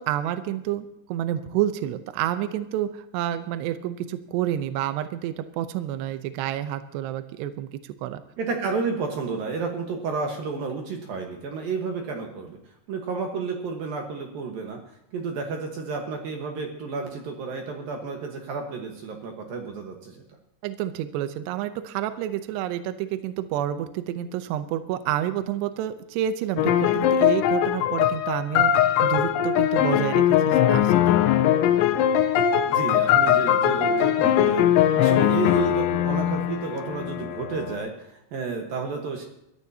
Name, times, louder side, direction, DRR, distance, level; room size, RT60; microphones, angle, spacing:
voice 1, 0.0-8.2 20.6-28.7 29.0-31.2, right 11 dB, 80° right, 10 dB, 2.5 m, -29 dB
voice 2, 8.4-12.6 12.9-14.8 15.1-20.2 32.7-39.3, right 4 dB, 65° right, 2 dB, 2.4 m, -31 dB
sound 1, 26.6-37.8, left 10 dB, 85° left, 3.0 m, -21 dB
22.5 x 13.5 x 2.8 m, 0.81 s
omnidirectional pair, 5.6 m